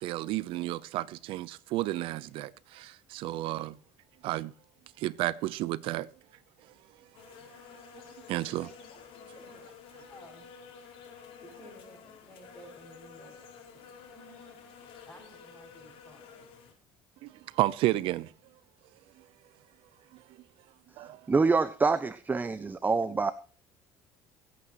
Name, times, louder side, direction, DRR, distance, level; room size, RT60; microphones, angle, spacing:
voice 1, 0.0-3.8 4.2-4.5 5.0-6.1 8.3-8.7 17.2-18.3 21.0-21.2, right 16 dB, 70° right, 0.8 m, -32 dB
sound 1, 7.1-16.7, left 6 dB, 70° left, 4.5 m, -51 dB
voice 2, 8.6-9.7 10.1-10.5 11.4-13.4 13.7-14.7 15.1-16.7, equal, 15° left, 6.4 m, -54 dB
voice 3, 21.3-23.3, right 4 dB, 20° right, 0.7 m, -26 dB
23.5 x 8.7 x 3.1 m
supercardioid pair, 105°, 10 cm